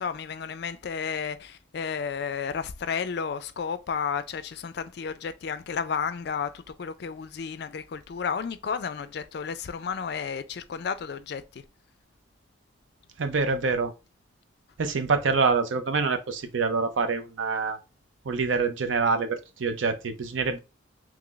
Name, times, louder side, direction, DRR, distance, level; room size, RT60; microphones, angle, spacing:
voice 1, 0.0-11.6, left 6 dB, 55° left, 0.4 m, -32 dB
voice 2, 13.2-13.9 14.8-17.8 18.3-20.6, right 4 dB, 75° right, 0.5 m, -26 dB
3.0 x 2.4 x 3.7 m
head